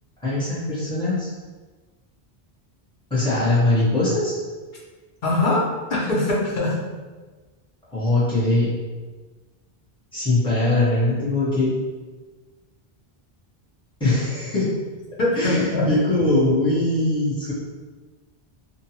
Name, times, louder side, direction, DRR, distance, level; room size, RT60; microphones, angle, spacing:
voice 1, 0.2-1.3 3.1-4.4 7.9-8.7 10.1-11.7 14.0-14.7 15.3-17.5, left 2 dB, 5° left, -10 dB, 0.9 m, -21 dB
voice 2, 5.2-5.6 5.9-6.8 15.2-15.9, left 2 dB, 55° left, -5 dB, 0.8 m, -22 dB
2.6 x 2.2 x 2.8 m, 1.3 s
omnidirectional pair, 1.0 m